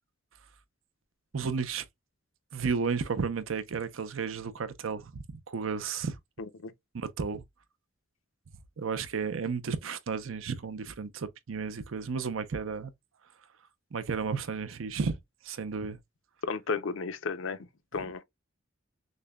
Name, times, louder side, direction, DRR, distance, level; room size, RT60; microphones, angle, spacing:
voice 1, 1.3-1.8 2.5-6.2 6.9-7.4 8.8-12.9 13.9-15.2 15.4-16.0, right 5 dB, 90° right, 0.6 m, -33 dB
voice 2, 6.4-6.7 16.5-18.2, left 4 dB, 80° left, 0.6 m, -34 dB
6.4 x 2.2 x 2.2 m
head